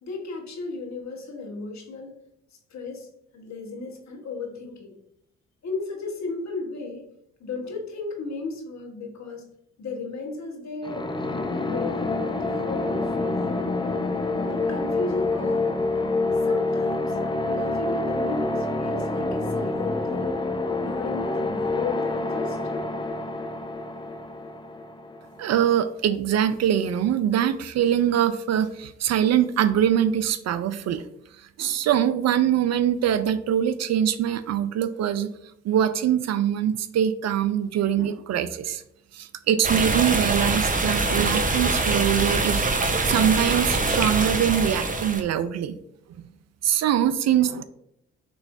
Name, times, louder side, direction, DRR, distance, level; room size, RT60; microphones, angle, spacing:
voice 1, 0.0-2.1 2.7-3.1 3.3-4.9 5.6-7.0 7.4-9.4 9.8-11.1 11.6-13.6 14.4-15.7 16.5-17.2 17.5-20.3 20.8-22.9, left 3 dB, 55° left, 2 dB, 1.3 m, -35 dB
sound 1, 10.8-25.5, left 2 dB, 15° left, 0.6 m, -27 dB
voice 2, 25.4-31.0 31.6-35.3 35.6-38.8 39.1-42.6 43.0-45.8 46.6-47.6, right 10 dB, 50° right, 13 dB, 0.4 m, -23 dB
sound 2, 39.6-45.2, right 3 dB, 25° right, 0.9 m, -24 dB
6.2 x 3.1 x 2.6 m, 0.77 s
hypercardioid pair, 50°, 33 cm